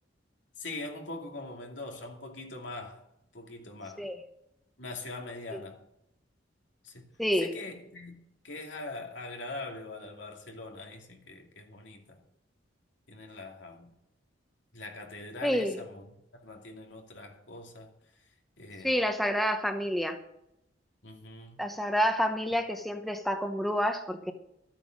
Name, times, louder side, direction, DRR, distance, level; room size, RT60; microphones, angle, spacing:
voice 1, 0.6-3.0 3.3-4.1 4.8-5.8 6.8-7.1 7.4-12.2 13.1-13.9 14.7-16.0 16.3-17.9 18.6-19.0 21.0-21.6, left 2 dB, 80° left, 2 dB, 2.5 m, -42 dB
voice 2, 7.2-7.5 15.4-15.8 18.8-20.2 21.6-24.3, equal, ahead, 6 dB, 0.9 m, -28 dB
13.5 x 8.8 x 6.4 m, 0.83 s
head